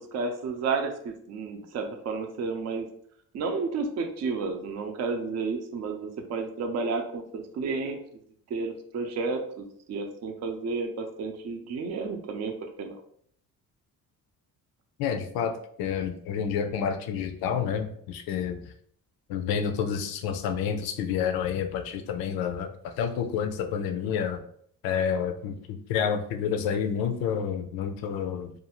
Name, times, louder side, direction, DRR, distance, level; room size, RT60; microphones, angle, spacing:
voice 1, 0.0-2.9 3.3-8.0 8.5-12.5 12.8-13.0, right 4 dB, 45° right, 4 dB, 0.5 m, -31 dB
voice 2, 15.0-18.7 19.3-24.4 24.8-28.5, left 7 dB, 85° left, 6 dB, 0.5 m, -29 dB
2.6 x 2.4 x 2.9 m, 0.63 s
cardioid pair, 110°, 35 cm